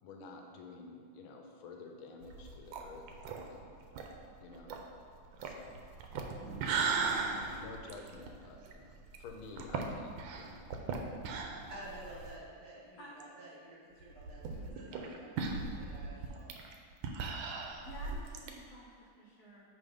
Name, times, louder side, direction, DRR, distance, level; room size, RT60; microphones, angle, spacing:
voice 1, 0.0-3.0 3.4-3.9 4.4-4.7 5.4-5.9 7.1-10.6, left 3 dB, 85° left, 2 dB, 1.5 m, -51 dB
sound 1, 2.2-12.4 12.8-12.9 13.2-13.3 14.0-18.5, right 4 dB, 80° right, 1.4 m, -38 dB
voice 2, 11.7-16.5, right 1 dB, 50° right, -8 dB, 2.2 m, -51 dB
voice 3, 16.2-16.7 17.8-19.6, equal, 55° left, -4 dB, 1.3 m, -52 dB
7.6 x 3.5 x 5.0 m, 2.2 s
omnidirectional pair, 2.2 m